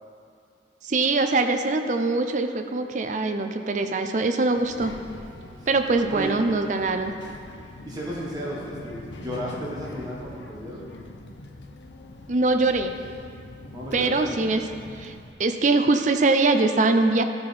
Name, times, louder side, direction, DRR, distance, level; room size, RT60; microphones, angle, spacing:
voice 1, 0.8-5.0 5.7-7.1 12.3-13.0 13.9-15.1 15.4-17.2, right 3 dB, 45° right, 7 dB, 0.5 m, -23 dB
Child speech kid speaking, 4.6-15.3, left 2 dB, 85° left, 0.7 m, -43 dB
voice 2, 6.1-6.4 7.8-10.8 13.7-14.4, equal, 20° right, -5 dB, 1.3 m, -33 dB
13.0 x 5.2 x 4.2 m, 2.4 s
head